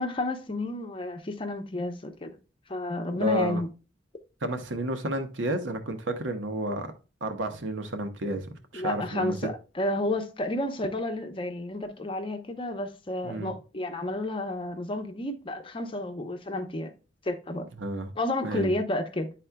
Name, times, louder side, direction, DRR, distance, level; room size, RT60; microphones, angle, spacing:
voice 1, 0.0-2.4 2.7-3.7 8.7-16.9 17.2-17.7 18.2-19.3, left 1 dB, 30° left, 0.8 m, -31 dB
voice 2, 3.2-3.6 4.4-6.9 7.2-9.3 13.2-13.6 17.8-18.1 18.4-18.7, right 1 dB, 85° right, 0.9 m, -31 dB
10.5 x 4.2 x 2.2 m
head